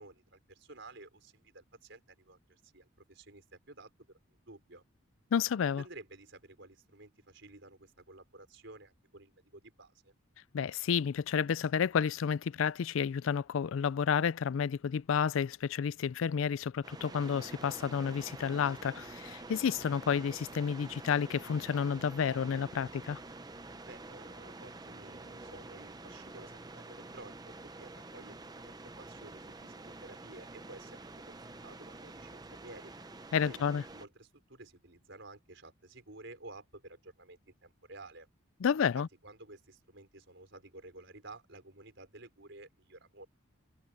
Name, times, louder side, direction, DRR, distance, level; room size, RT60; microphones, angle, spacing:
voice 1, 0.0-3.9 4.5-4.8 5.8-10.1 23.9-27.5 27.8-31.3 31.6-32.9 33.4-38.3 39.0-43.3, right 2 dB, 60° right, 5.4 m, -52 dB
voice 2, 5.3-5.8 10.5-23.2 33.3-33.8 38.6-39.1, left 7 dB, 75° left, 0.4 m, -31 dB
sound 1, 16.8-34.1, right 2 dB, 20° right, 0.7 m, -48 dB
head